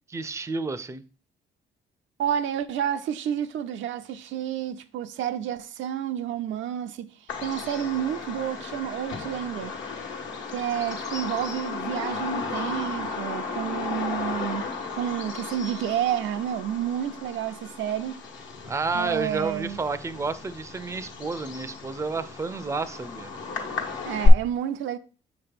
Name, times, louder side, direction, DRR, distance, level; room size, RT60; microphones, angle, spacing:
voice 1, 0.1-1.0 18.6-23.3, right 4 dB, 15° right, 0.5 m, -30 dB
voice 2, 2.2-7.1 7.4-9.8 10.5-14.6 14.9-18.2 18.9-19.8 24.1-25.0, right 10 dB, 75° right, 0.5 m, -30 dB
Bird vocalization bird call bird song, 7.3-24.3, left 4 dB, 70° left, 1.2 m, -33 dB
6.4 x 3.0 x 5.1 m
cardioid pair, 90°, 20 cm